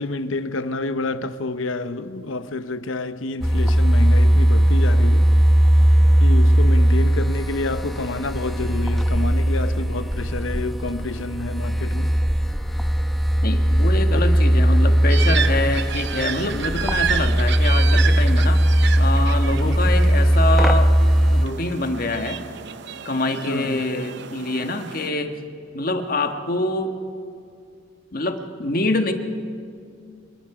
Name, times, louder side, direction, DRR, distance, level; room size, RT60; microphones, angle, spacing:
voice 1, 0.0-5.3 6.2-12.1 14.1-14.2 19.6-19.8 23.5-23.8, left 2 dB, 85° left, 0.9 m, -28 dB
sound 1, 3.4-21.5, equal, ahead, 0.9 m, -18 dB
voice 2, 13.4-18.6 19.0-20.9 21.3-22.4 23.0-25.3 25.7-26.9 28.1-29.1, left 2 dB, 50° left, 1.5 m, -25 dB
sound 2, 15.1-25.1, right 8 dB, 60° right, 0.7 m, -31 dB
26.0 x 20.5 x 5.0 m
head